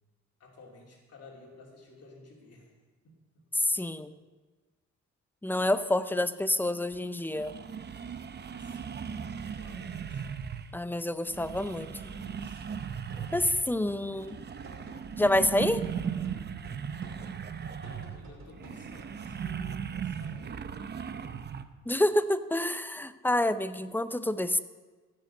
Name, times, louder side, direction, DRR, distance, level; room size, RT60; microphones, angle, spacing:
voice 1, 0.4-2.7 3.0-3.8 8.5-9.1 9.5-10.3 11.3-12.9 17.8-20.9, left 3 dB, 55° left, -2 dB, 2.8 m, -54 dB
voice 2, 3.5-4.1 5.4-7.5 10.7-11.9 13.3-14.4 15.2-15.8 21.9-24.6, left 1 dB, 5° left, 12 dB, 0.5 m, -28 dB
sound 1, 6.9-7.0 7.3-10.8 11.2-13.8 14.1-21.6, right 7 dB, 35° right, 0.7 m, -37 dB
sound 2, 12.7-19.2, right 2 dB, 60° right, 2.8 m, -50 dB
15.5 x 6.5 x 6.6 m, 1.3 s
cardioid pair, 90°, 30 cm